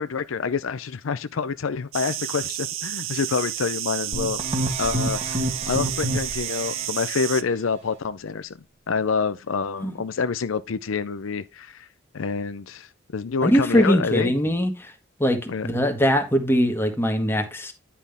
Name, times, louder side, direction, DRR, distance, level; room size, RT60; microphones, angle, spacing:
voice 1, 0.0-4.4 4.8-8.5 8.9-11.9 12.1-14.3 15.5-15.7, left 5 dB, 70° left, 0.5 m, -27 dB
sound 1, 1.9-7.4, right 13 dB, 70° right, 0.6 m, -31 dB
sound 2, 4.1-6.9, right 1 dB, 30° right, 1.5 m, -28 dB
voice 2, 13.4-14.9 15.2-17.7, equal, 10° left, 1.5 m, -21 dB
10.5 x 5.7 x 3.5 m
head